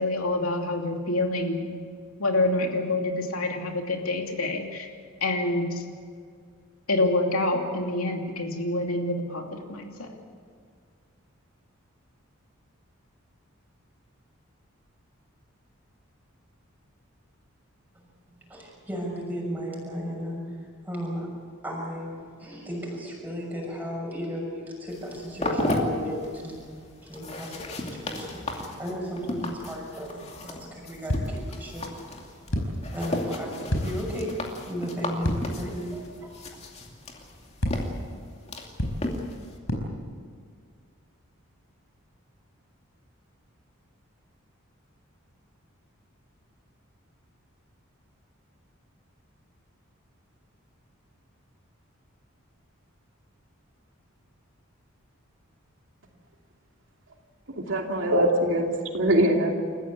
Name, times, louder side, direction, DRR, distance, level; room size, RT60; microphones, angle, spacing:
voice 1, 0.0-1.7 2.2-4.9 5.2-5.8 6.9-10.1, left 2 dB, 85° left, 3 dB, 2.9 m, -27 dB
voice 2, 18.5-21.3 21.6-32.0 32.4-36.6, equal, 10° right, -2 dB, 6.4 m, -35 dB
sound 1, 24.9-39.6, left 1 dB, 30° left, 2.6 m, -35 dB
sound 2, 31.1-31.6 32.5-33.0 33.7-34.3 35.2-35.8 36.0-36.1 37.6-38.1 38.8-39.3 39.7-40.2, equal, 70° left, 4.8 m, -30 dB
voice 3, 57.6-59.5, right 1 dB, 60° right, 2 dB, 2.7 m, -23 dB
29.0 x 15.0 x 8.5 m, 2.1 s
head